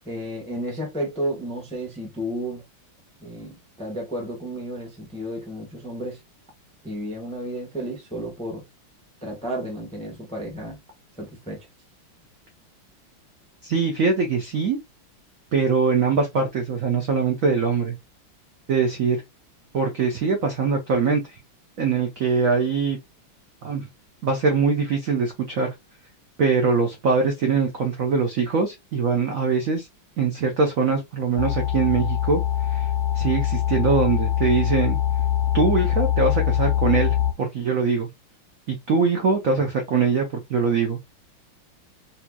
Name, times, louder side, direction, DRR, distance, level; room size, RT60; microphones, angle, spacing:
voice 1, 0.0-2.6 3.2-6.2 6.8-8.6 9.2-10.8 11.2-11.7, right 1 dB, 5° left, 0.4 m, -32 dB
voice 2, 13.6-14.8 15.5-18.0 18.7-19.2 19.7-21.2 21.8-23.0 23.6-23.9 24.2-25.7 26.4-29.9 30.2-32.4 32.7-32.9 33.1-35.0 35.5-38.1 38.7-41.0, right 5 dB, 75° right, 0.7 m, -22 dB
sound 1, 31.4-37.3, left 11 dB, 90° left, 1.6 m, -23 dB
4.3 x 2.8 x 2.2 m
omnidirectional pair, 2.4 m